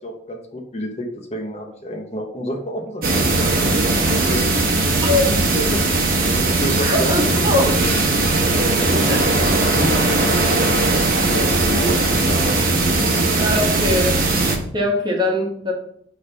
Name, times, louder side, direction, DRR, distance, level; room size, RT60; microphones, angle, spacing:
voice 1, 0.0-4.4 5.1-7.9 8.5-9.4 9.7-12.6 12.8-13.2, equal, 35° left, 2 dB, 0.9 m, -30 dB
sound 1, 3.0-14.6, right 2 dB, 45° right, 1.0 m, -18 dB
voice 2, 5.0-5.3 6.8-7.7 9.1-9.2 13.4-14.2 14.7-15.7, left 1 dB, 25° right, 0 dB, 1.3 m, -21 dB
6.4 x 3.4 x 5.7 m, 0.66 s
head